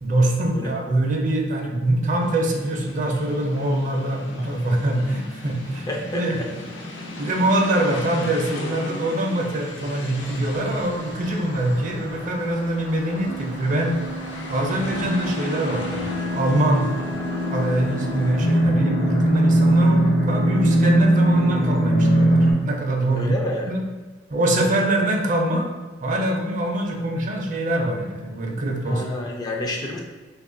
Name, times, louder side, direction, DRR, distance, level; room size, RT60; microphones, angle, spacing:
voice 1, 0.0-5.8 6.1-6.4 7.2-14.0 14.5-16.0 16.3-16.9 17.5-23.3 23.7-23.8 24.3-25.7 26.0-29.0, right 1 dB, 45° right, 1 dB, 0.5 m, -23 dB
sound 1, 2.2-18.7, left 2 dB, 90° left, 0.6 m, -38 dB
voice 2, 5.9-6.5 23.1-23.7 28.8-30.0, left 1 dB, 20° left, 0 dB, 0.3 m, -29 dB
sound 2, 10.2-22.5, right 1 dB, 60° left, 0.8 m, -22 dB
2.8 x 2.3 x 3.7 m, 1.3 s
head